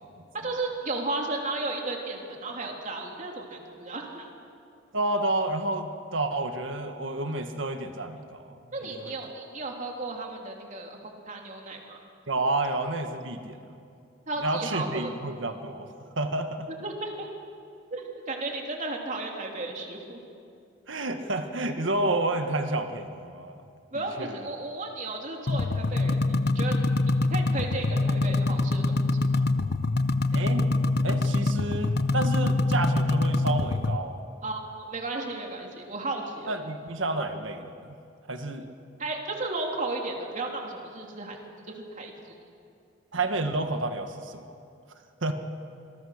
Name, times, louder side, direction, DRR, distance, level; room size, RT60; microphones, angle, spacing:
voice 1, 0.4-4.3 8.7-12.0 14.3-15.2 16.7-17.3 17.9-20.2 23.9-26.8 27.0-29.1 29.3-29.4 34.4-36.6 39.0-41.4 41.7-42.1, right 2 dB, 40° right, 1 dB, 3.2 m, -34 dB
voice 2, 4.9-8.5 8.9-9.1 12.3-13.6 14.4-16.7 20.9-23.6 24.2-24.4 30.3-30.7 31.0-34.3 36.5-37.9 38.3-38.7 43.1-44.4 45.2-45.3, right 2 dB, 75° right, 6 dB, 1.6 m, -30 dB
sound 1, 25.5-34.0, left 2 dB, 55° left, 0.8 m, -25 dB
26.5 x 22.0 x 6.6 m, 2.5 s
head